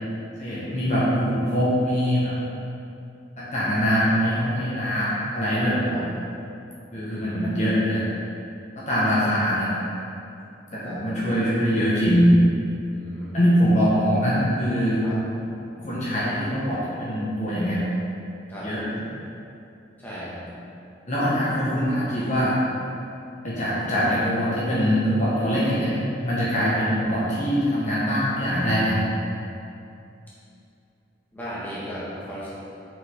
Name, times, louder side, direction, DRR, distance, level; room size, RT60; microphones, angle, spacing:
voice 1, 0.4-2.4 3.4-5.9 6.9-8.1 8.8-9.7 10.7-12.3 13.3-15.0 15.8-17.8 18.6-18.8 21.1-22.6 23.4-25.9 26.2-29.0, equal, 35° left, -9 dB, 1.4 m, -23 dB
voice 2, 7.1-7.5 10.9-11.0 12.8-13.4 15.0-15.2 18.5-18.7 20.0-20.4 26.7-26.8 31.3-32.5, equal, 10° left, -10 dB, 1.6 m, -36 dB
7.0 x 6.0 x 3.7 m, 2.6 s
head